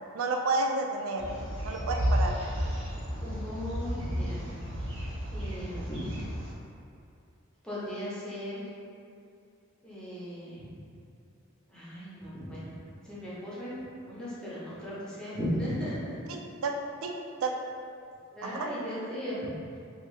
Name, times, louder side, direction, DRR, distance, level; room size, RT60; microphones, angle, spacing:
voice 1, 0.1-1.2 1.6-2.4 16.3-16.7 17.0-17.1 17.4-17.5 18.4-18.7, right 3 dB, 85° right, 3 dB, 0.4 m, -30 dB
sound 1, 1.2-6.5, equal, 65° right, 0.8 m, -32 dB
voice 2, 3.2-4.4 5.3-6.2 7.6-8.6 9.8-10.7 11.7-12.7 13.1-16.1 18.3-19.5, equal, 5° left, -10 dB, 0.8 m, -37 dB
2.8 x 2.7 x 3.2 m, 2.5 s
head